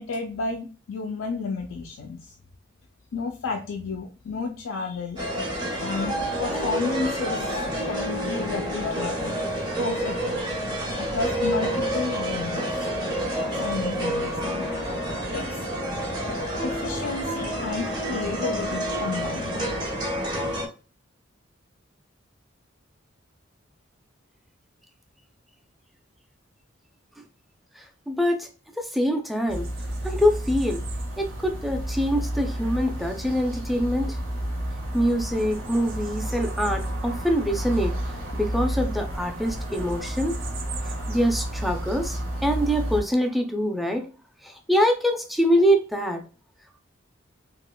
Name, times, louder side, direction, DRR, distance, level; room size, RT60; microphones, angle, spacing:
voice 1, 0.0-2.3 3.1-5.2 5.8-7.5 7.8-9.4 9.8-10.4 11.0-12.9 13.5-14.7 15.3-15.6 16.6-19.5, left 4 dB, 90° left, 2 dB, 0.4 m, -32 dB
sound 1, 5.2-20.7, equal, 20° right, 0.9 m, -28 dB
voice 2, 27.8-28.5 28.8-29.7 30.0-30.8 31.2-34.2 34.9-37.9 38.3-40.4 41.1-44.1 44.4-46.2, equal, ahead, 3 dB, 0.4 m, -24 dB
sound 2, 29.5-43.0, right 1 dB, 80° right, 1.0 m, -31 dB
3.6 x 2.8 x 2.2 m, 0.35 s
head